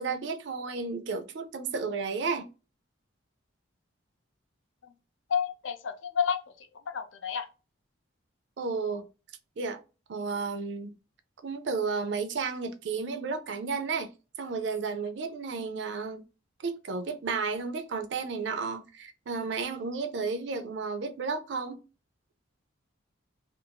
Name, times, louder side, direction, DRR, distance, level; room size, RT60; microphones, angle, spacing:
voice 1, 0.0-2.5 8.6-9.1 9.6-9.8 10.1-10.9 11.4-14.1 14.4-16.2 16.6-21.8, right 4 dB, 60° right, 0.4 m, -32 dB
voice 2, 5.3-7.5, left 7 dB, 70° left, 0.5 m, -31 dB
2.5 x 2.4 x 2.7 m
head